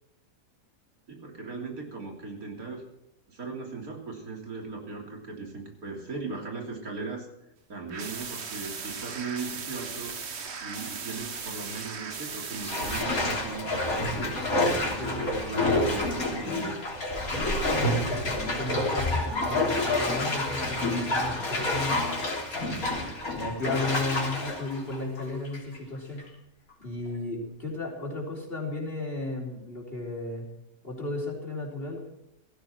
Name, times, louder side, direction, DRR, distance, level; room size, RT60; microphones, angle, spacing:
voice 1, 1.1-2.8 3.3-7.3 7.7-10.1 10.6-14.4 14.8-16.8 17.2-17.8, right 4 dB, 85° right, 1 dB, 3.8 m, -38 dB
sound 1, 7.9-13.0, right 6 dB, 50° right, 1.4 m, -37 dB
Bathtub (filling or washing), 10.5-10.9 11.3-11.5 12.6-25.8 26.2-26.3, left 2 dB, 80° left, 3.7 m, -28 dB
voice 2, 18.0-22.0 23.3-26.2 26.8-30.5 30.8-32.2, left 2 dB, 40° left, -1 dB, 4.2 m, -34 dB
17.5 x 15.0 x 4.5 m, 0.85 s
omnidirectional pair, 1.5 m